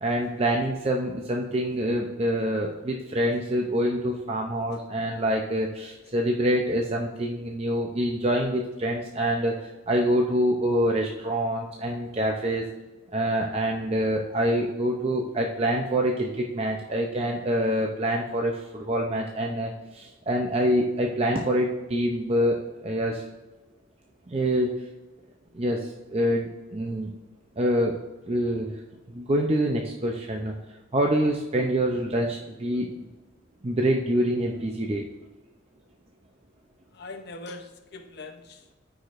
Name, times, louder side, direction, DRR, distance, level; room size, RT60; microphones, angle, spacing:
voice 1, 0.0-9.5 9.9-12.6 13.1-23.2 24.3-24.8 25.5-27.1 27.6-27.9 28.3-28.7 29.1-30.5 30.9-32.9 33.6-35.1, equal, 30° right, 1 dB, 0.5 m, -26 dB
voice 2, 36.9-38.7, left 3 dB, 55° left, 5 dB, 0.7 m, -42 dB
13.0 x 5.0 x 2.5 m, 1.2 s
head